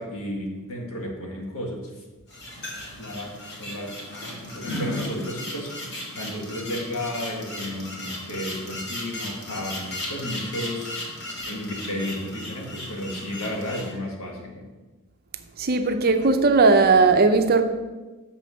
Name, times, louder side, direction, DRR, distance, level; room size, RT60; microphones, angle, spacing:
voice 1, 0.0-2.0 3.0-3.9 4.4-14.7, left 1 dB, 70° left, 1 dB, 1.7 m, -33 dB
sound 1, 2.3-13.9, left 1 dB, 50° left, 2.1 m, -35 dB
voice 2, 15.6-17.6, right 3 dB, 45° right, 7 dB, 0.6 m, -18 dB
6.8 x 5.6 x 6.3 m, 1.2 s
head